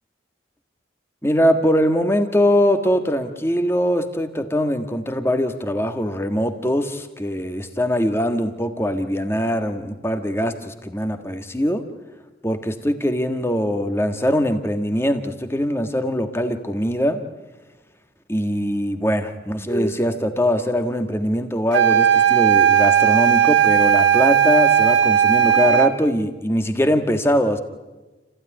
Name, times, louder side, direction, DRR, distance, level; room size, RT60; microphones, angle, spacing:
voice 1, 1.2-11.9 12.4-17.2 18.3-27.6, equal, 15° left, 7 dB, 1.5 m, -22 dB
sound 1, 21.7-26.0, right 9 dB, 80° right, 1.7 m, -16 dB
29.5 x 15.5 x 9.9 m, 1.2 s
head